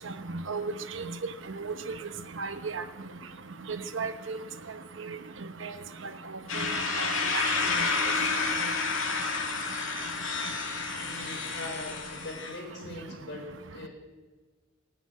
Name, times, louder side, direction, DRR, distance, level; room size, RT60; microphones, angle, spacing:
voice 1, 0.5-1.0 1.6-1.7 2.4-2.8 3.7-4.4 5.6-5.7 6.6-6.7 7.0-7.1 7.3-7.4, right 4 dB, 70° right, 9 dB, 0.9 m, -34 dB
sound 1, 6.5-12.6, left 4 dB, 80° left, 2.4 m, -30 dB
voice 2, 11.0-13.9, left 2 dB, 60° left, 1 dB, 4.3 m, -41 dB
16.0 x 7.1 x 9.4 m, 1.4 s
head